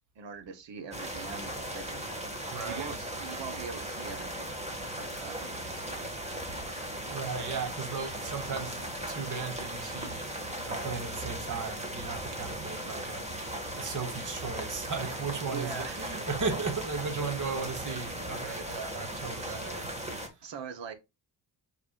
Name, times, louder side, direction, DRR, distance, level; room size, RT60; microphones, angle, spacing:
voice 1, 0.1-2.0 2.6-6.5 15.5-16.3 19.4-19.6 20.4-20.9, right 6 dB, 65° right, 1.4 m, -43 dB
sound 1, 0.9-20.3, right 1 dB, 15° right, 2.0 m, -37 dB
voice 2, 2.5-3.0 7.1-19.9, right 5 dB, 40° right, 1.8 m, -36 dB
8.1 x 4.8 x 2.5 m
cardioid pair, 95°, 46 cm